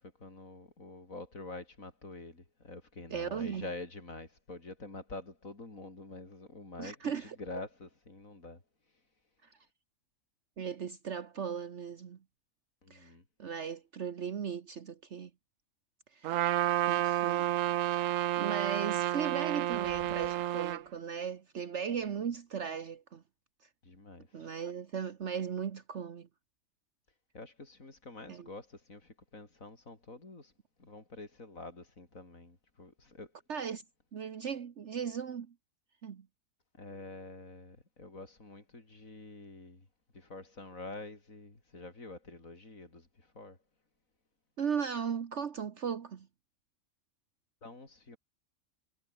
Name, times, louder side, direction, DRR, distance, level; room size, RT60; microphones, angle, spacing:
voice 1, 0.0-8.6 12.8-13.2 20.0-20.3 22.2-22.3 23.8-24.5 27.3-30.5 30.8-33.3 36.8-39.9 40.1-43.6 47.6-48.2, left 2 dB, 80° left, 4.9 m, -47 dB
voice 2, 3.1-3.7 6.8-7.4 10.6-12.2 12.9-13.1 13.4-15.3 16.1-17.5 18.4-23.2 24.3-26.3 28.3-28.5 33.5-33.8 34.1-35.5 36.0-36.3 44.6-46.3, right 7 dB, 60° right, 1.4 m, -37 dB
Trumpet, 16.2-20.8, right 14 dB, 75° right, 1.0 m, -30 dB
omnidirectional pair, 1.4 m